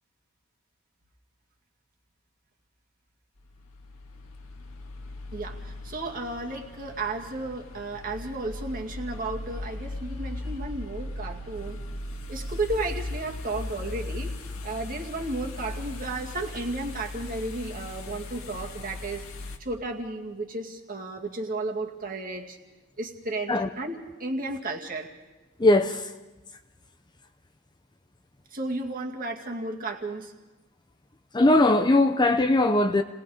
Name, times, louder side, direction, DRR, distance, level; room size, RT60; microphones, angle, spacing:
sound 1, 3.4-19.6, left 2 dB, 80° left, 1.8 m, -38 dB
voice 1, 5.3-11.8 12.3-14.3 14.6-19.2 19.6-22.6 23.0-25.1 28.5-30.3, right 2 dB, 40° right, 2.2 m, -33 dB
voice 2, 25.6-26.1 31.3-33.0, left 2 dB, 20° left, 0.7 m, -20 dB
30.0 x 19.5 x 5.0 m
head